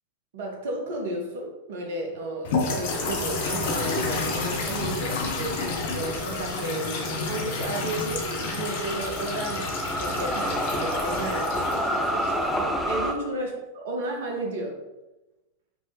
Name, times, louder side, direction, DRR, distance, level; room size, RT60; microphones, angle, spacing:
voice 1, 0.3-14.7, right 2 dB, 55° right, 2 dB, 0.7 m, -33 dB
sound 1, 2.4-12.6, left 3 dB, 55° left, 0.5 m, -30 dB
sound 2, 2.9-13.1, equal, 5° left, 0.3 m, -31 dB
4.6 x 2.1 x 2.7 m, 1.0 s
figure-of-eight pair, 90°, 0 cm